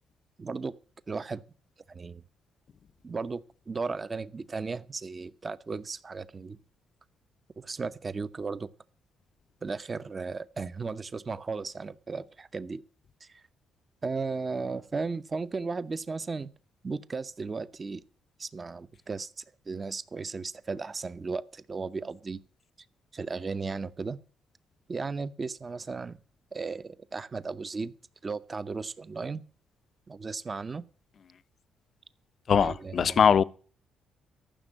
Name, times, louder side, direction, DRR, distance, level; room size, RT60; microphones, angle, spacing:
voice 1, 0.4-0.8 1.1-1.4 1.9-2.2 3.0-6.6 7.6-8.7 9.6-12.8 13.2-13.4 14.0-16.5 16.8-18.0 18.4-22.4 23.1-24.2 24.9-26.2 26.5-27.9 28.2-29.4 30.1-30.9 32.6-33.2, right 4 dB, 30° right, 0.8 m, -35 dB
voice 2, 32.5-33.4, left 7 dB, 55° left, 0.6 m, -21 dB
14.0 x 6.1 x 9.1 m
cardioid pair, 90°, 0 cm